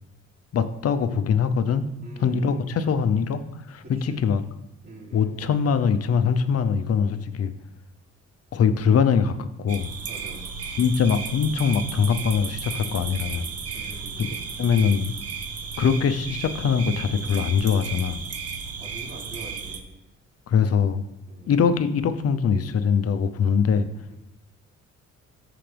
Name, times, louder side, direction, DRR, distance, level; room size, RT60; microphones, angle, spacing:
voice 1, 0.5-1.9 2.2-3.4 3.7-4.4 5.1-7.5 8.5-9.9 10.8-13.5 14.6-15.1 15.8-18.2 20.5-21.0 21.5-23.9, left 6 dB, 55° left, 11 dB, 0.8 m, -22 dB
voice 2, 2.0-2.8 3.8-4.2 4.8-5.3 10.0-10.5 13.7-14.7 18.8-20.0 21.3-21.5 24.1-24.2, right 1 dB, 30° right, -3 dB, 3.3 m, -44 dB
sound 1, 9.7-19.8, right 5 dB, 55° right, 1.2 m, -34 dB
13.5 x 5.0 x 3.5 m, 0.88 s
cardioid pair, 90°, 30 cm